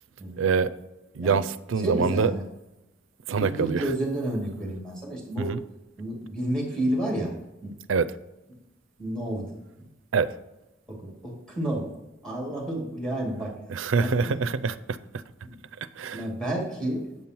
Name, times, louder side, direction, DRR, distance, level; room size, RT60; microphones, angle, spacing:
voice 1, 0.4-0.7 1.1-2.3 3.3-3.8 5.4-5.6 7.9-8.1 10.1-10.3 13.7-15.0 16.0-16.2, right 5 dB, 80° right, 15 dB, 0.5 m, -25 dB
voice 2, 1.8-2.4 3.4-5.5 6.0-7.4 7.6-7.7 9.0-9.5 10.9-11.9 12.2-13.5 14.0-14.3 15.4-15.6 16.1-17.1, right 1 dB, 5° left, -1 dB, 2.4 m, -30 dB
8.0 x 5.4 x 4.5 m, 0.96 s
head